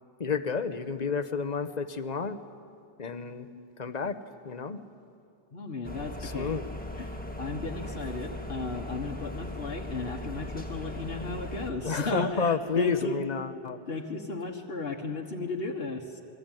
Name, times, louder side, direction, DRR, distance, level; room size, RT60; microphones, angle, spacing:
voice 1, 0.2-2.4 3.0-3.5 3.8-4.2 4.4-4.8 6.2-6.6 11.8-13.8, left 5 dB, 40° left, 10 dB, 1.2 m, -30 dB
voice 2, 5.5-6.6 7.0-13.2 13.9-16.2, left 3 dB, 70° left, 2 dB, 1.6 m, -35 dB
sound 1, 5.8-11.7, left 1 dB, 10° left, 1.9 m, -38 dB
28.0 x 21.5 x 9.1 m, 2.3 s
omnidirectional pair, 1.1 m